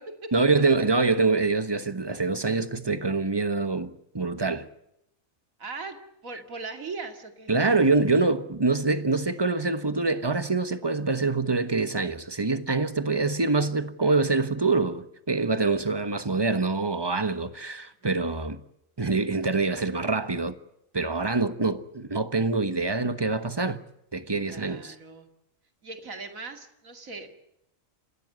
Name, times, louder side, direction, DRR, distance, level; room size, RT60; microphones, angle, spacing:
voice 1, 0.3-4.7 7.5-18.6 19.0-20.6 20.9-23.8 24.1-24.9, right 3 dB, 20° right, 1.2 m, -25 dB
voice 2, 5.6-6.0 6.2-7.5 18.0-18.1 24.4-25.3 25.8-27.3, right 3 dB, 80° right, 2.8 m, -39 dB
29.5 x 16.0 x 8.1 m
omnidirectional pair, 1.4 m